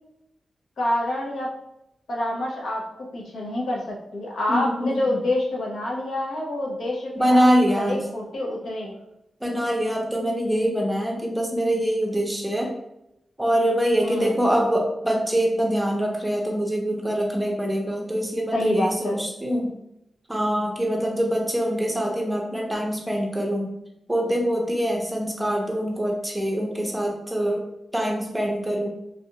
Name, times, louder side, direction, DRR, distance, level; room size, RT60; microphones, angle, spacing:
voice 1, 0.8-1.5 2.1-7.4 7.8-8.9 14.0-14.3 18.5-19.2, left 1 dB, 75° left, -2 dB, 0.8 m, -27 dB
voice 2, 4.5-5.0 7.2-8.0 9.4-12.7 13.4-19.7 20.3-23.7 24.1-27.6 27.9-28.9, equal, 10° right, 0 dB, 0.7 m, -24 dB
3.2 x 2.5 x 2.8 m, 0.85 s
wide cardioid pair, 95°, 0 cm